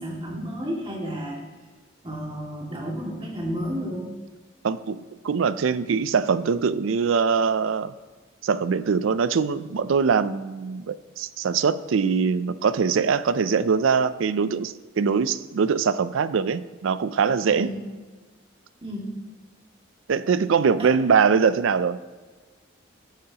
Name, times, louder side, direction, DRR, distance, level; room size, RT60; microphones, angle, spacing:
voice 1, 0.0-1.4 2.0-4.2 17.5-17.8 18.8-19.2 20.8-20.9, equal, 25° right, -3 dB, 2.2 m, -32 dB
voice 2, 4.6-7.9 8.4-17.7 20.1-22.0, right 6 dB, 70° right, 15 dB, 0.4 m, -22 dB
15.0 x 8.7 x 2.9 m, 1.3 s
head